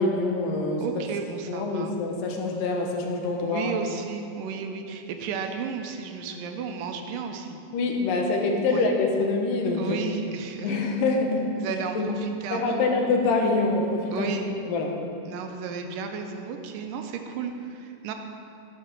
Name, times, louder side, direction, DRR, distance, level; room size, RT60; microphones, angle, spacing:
voice 1, 0.0-0.8 1.5-3.7 7.7-10.0 10.6-11.5 12.0-12.1 12.5-14.3 14.7-15.0, left 3 dB, 90° left, 1 dB, 2.8 m, -25 dB
voice 2, 0.8-1.9 3.4-7.6 8.7-8.9 9.8-10.8 11.6-12.9 14.1-14.4 15.3-18.1, right 6 dB, 85° right, 5 dB, 2.4 m, -33 dB
12.0 x 7.0 x 6.0 m, 2.6 s
omnidirectional pair, 3.8 m